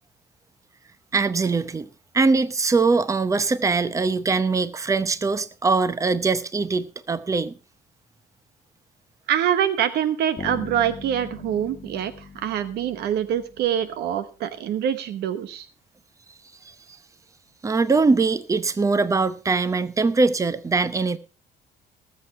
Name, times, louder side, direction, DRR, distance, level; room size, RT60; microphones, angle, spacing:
voice 1, 1.1-1.9 2.1-7.6 16.7-16.8 17.6-21.2, right 4 dB, 20° right, 0.8 m, -22 dB
voice 2, 9.3-15.6, right 10 dB, 75° right, 1.0 m, -25 dB
Bass guitar, 10.4-14.2, left 4 dB, 30° left, 1.6 m, -40 dB
18.5 x 7.5 x 4.2 m
cardioid pair, 110°, 17 cm